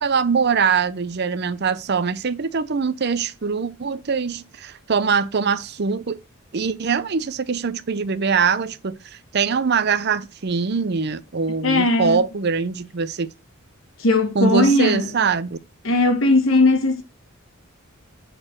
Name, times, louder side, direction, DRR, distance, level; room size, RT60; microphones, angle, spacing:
voice 1, 0.0-6.2 6.5-13.3 14.3-15.6, right 5 dB, 50° right, 0.6 m, -23 dB
voice 2, 11.6-12.2 14.0-15.1 15.8-17.0, left 2 dB, 70° left, 1.6 m, -18 dB
7.9 x 4.5 x 4.4 m
head